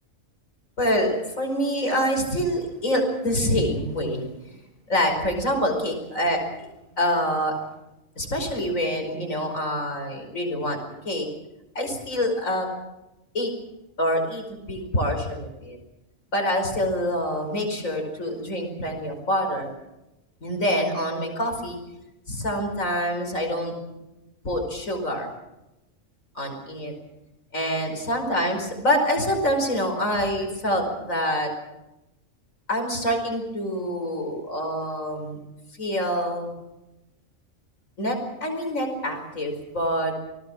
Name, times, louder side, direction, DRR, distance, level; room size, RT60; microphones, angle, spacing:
voice 1, 0.8-4.6 4.9-6.4 7.0-7.6 8.2-10.8 11.0-11.3 11.8-12.7 13.3-13.5 14.0-15.8 16.3-19.7 20.4-21.8 22.3-23.7 24.4-25.3 26.4-26.9 27.5-31.5 32.7-35.4 35.8-36.5 38.0-40.1, equal, 80° left, 3 dB, 5.5 m, -26 dB
28.5 x 19.5 x 6.3 m, 0.95 s
omnidirectional pair, 1.4 m